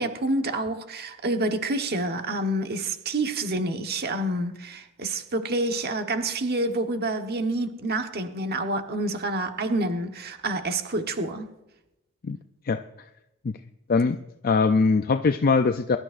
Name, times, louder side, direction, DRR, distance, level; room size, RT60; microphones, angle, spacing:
voice 1, 0.0-11.5, right 2 dB, 45° right, 1.2 m, -28 dB
voice 2, 14.4-16.0, left 4 dB, 45° left, 0.5 m, -21 dB
23.5 x 12.0 x 2.6 m
head